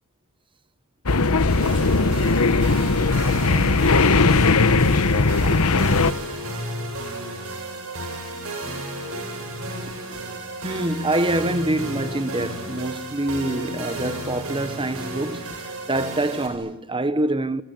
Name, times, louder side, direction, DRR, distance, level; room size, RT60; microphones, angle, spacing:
sound 1, 1.1-6.1, left 3 dB, 80° left, 1.1 m, -18 dB
sound 2, 1.5-16.5, right 1 dB, 65° right, 7.2 m, -33 dB
voice 1, 10.6-17.6, right 1 dB, 25° right, 1.3 m, -25 dB
28.5 x 22.5 x 9.2 m
head